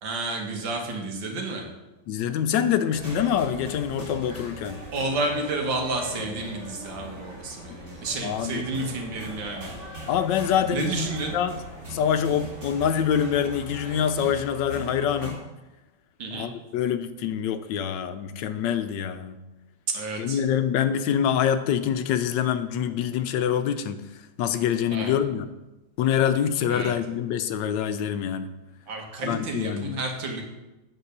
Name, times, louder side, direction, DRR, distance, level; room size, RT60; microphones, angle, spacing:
voice 1, 0.0-1.6 4.9-9.7 10.7-11.4 16.2-16.5 19.9-20.4 24.9-25.2 26.7-26.9 28.9-30.4, right 2 dB, 85° right, 2 dB, 2.1 m, -30 dB
voice 2, 2.1-4.8 8.2-8.7 10.1-11.1 11.3-11.6 11.9-15.4 16.3-19.4 20.2-24.0 24.4-25.5 26.0-28.5 29.2-30.0, left 9 dB, 75° left, 10 dB, 1.2 m, -25 dB
sound 1, 2.9-15.3, equal, 40° right, 3.0 m, -40 dB
9.0 x 4.4 x 6.6 m, 1.0 s
omnidirectional pair, 2.0 m